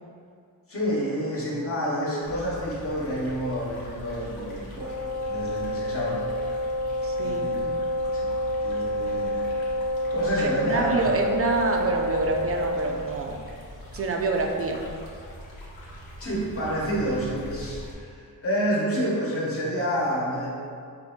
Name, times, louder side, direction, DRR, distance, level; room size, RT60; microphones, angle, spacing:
voice 1, 0.7-4.9 5.3-6.2 7.2-7.7 8.1-8.3 8.6-9.6 10.1-11.2 16.2-20.5, equal, 40° left, -6 dB, 1.1 m, -29 dB
sound 1, 2.2-17.9, equal, 75° left, 1.0 m, -42 dB
Wind instrument woodwind instrument, 4.7-13.0, left 1 dB, 80° right, 0.7 m, -28 dB
voice 2, 7.0-7.6 10.4-13.4 13.9-14.8, right 3 dB, 40° right, 2 dB, 0.4 m, -27 dB
5.0 x 2.6 x 3.6 m, 2.3 s
wide cardioid pair, 155°, 36 cm